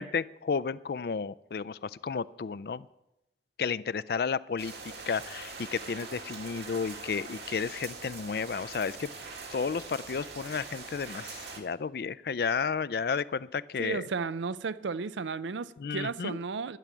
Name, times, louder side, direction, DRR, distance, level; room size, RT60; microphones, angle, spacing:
voice 1, 0.0-2.9 3.6-4.7 5.1-9.1 9.5-14.1 15.8-16.4, left 5 dB, 55° left, 0.4 m, -32 dB
sound 1, 4.6-11.6, right 4 dB, 70° right, 2.1 m, -43 dB
voice 2, 13.8-16.8, right 4 dB, 90° right, 0.5 m, -34 dB
12.5 x 7.3 x 9.7 m
head